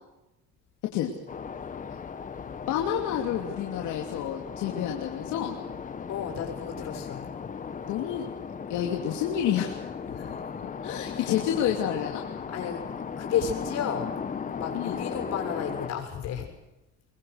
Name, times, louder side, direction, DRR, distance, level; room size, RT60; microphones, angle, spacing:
sound 1, 1.3-15.9, left 6 dB, 25° left, 1.4 m, -37 dB
voice 1, 2.7-5.6 7.9-8.3 8.7-9.8 10.6-12.2 14.7-15.0, left 10 dB, 85° left, 0 dB, 2.8 m, -29 dB
voice 2, 6.1-7.3 10.1-10.4 11.1-11.4 12.5-12.8 13.2-14.1 14.6-16.5, left 8 dB, 60° left, 3 dB, 7.0 m, -32 dB
26.5 x 22.0 x 6.5 m, 1.0 s
cardioid pair, 150°, 29 cm